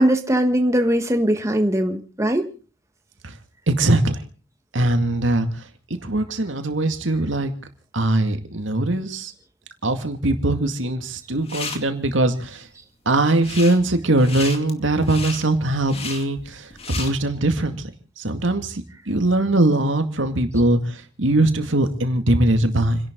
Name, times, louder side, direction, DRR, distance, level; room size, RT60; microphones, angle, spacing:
voice 1, 0.0-2.4, right 1 dB, 15° right, 1.5 m, -20 dB
voice 2, 3.7-4.2 4.7-5.5 6.0-7.5 7.9-9.3 9.8-12.7 13.1-17.8 18.2-23.0, right 2 dB, 80° right, 2.2 m, -21 dB
sound 1, 11.2-11.8 13.3-13.8 14.1-17.1, left 4 dB, 30° left, 2.3 m, -33 dB
30.0 x 11.5 x 3.9 m
head